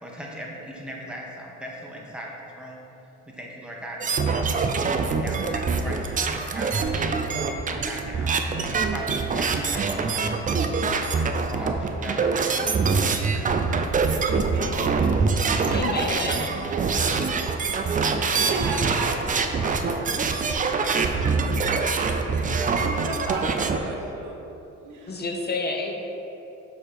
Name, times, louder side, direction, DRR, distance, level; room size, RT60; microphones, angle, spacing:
voice 1, 0.0-2.8 3.3-6.8 7.2-8.5 8.9-10.7 11.2-14.0, right 1 dB, 5° right, -3 dB, 1.0 m, -39 dB
sound 1, 4.0-23.8, right 4 dB, 25° right, 0.4 m, -24 dB
voice 2, 14.3-15.1 18.4-21.4 21.6-21.7 22.5-24.6 24.8-25.2, right 3 dB, 75° right, 1 dB, 0.9 m, -35 dB
voice 3, 15.7-16.5 25.1-25.9, left 3 dB, 35° left, 2 dB, 0.6 m, -29 dB
6.3 x 3.0 x 5.0 m, 2.9 s
cardioid pair, 90°, 30 cm